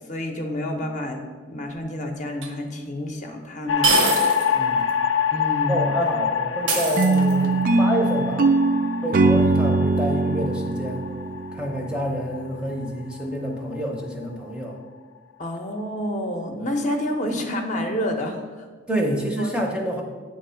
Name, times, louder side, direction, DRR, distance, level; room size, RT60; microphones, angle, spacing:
voice 1, 0.0-4.0 5.3-5.9 15.4-18.6 19.4-19.5, left 1 dB, 40° left, 3 dB, 0.7 m, -29 dB
sound 1, 2.4-2.5 3.8-4.5 4.9-5.0 6.7-7.6, right 4 dB, 80° right, 1.0 m, -24 dB
sound 2, 3.7-14.0, left 7 dB, 85° left, 0.4 m, -26 dB
voice 2, 4.5-5.0 5.7-8.5 9.0-11.1 11.5-14.8 18.9-20.0, equal, 5° right, 0 dB, 0.6 m, -28 dB
sound 3, 7.0-12.1, right 3 dB, 45° right, 0.3 m, -21 dB
8.6 x 3.0 x 5.5 m, 1.4 s
head